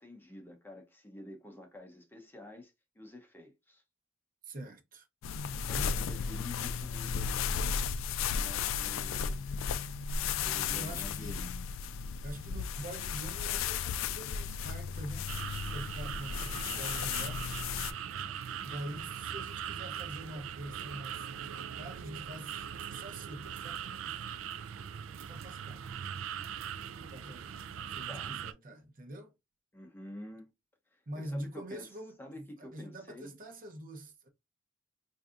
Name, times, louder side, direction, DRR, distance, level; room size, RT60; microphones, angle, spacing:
voice 1, 0.0-3.8 5.7-7.9 8.3-9.4 10.4-11.5 28.1-28.4 29.7-30.5 30.9-31.9 32.2-33.3, left 1 dB, 10° left, 0.7 m, -49 dB
voice 2, 4.4-5.1 5.5-5.9 10.7-11.5 12.2-15.3 15.7-17.5 18.6-24.3 25.2-25.9 27.0-27.6 27.9-29.3 31.1-34.3, right 1 dB, 45° right, 0.8 m, -45 dB
sound 1, 5.2-17.9, left 6 dB, 85° left, 0.3 m, -34 dB
sound 2, 15.3-28.5, right 8 dB, 80° right, 0.4 m, -41 dB
4.6 x 2.6 x 2.4 m
head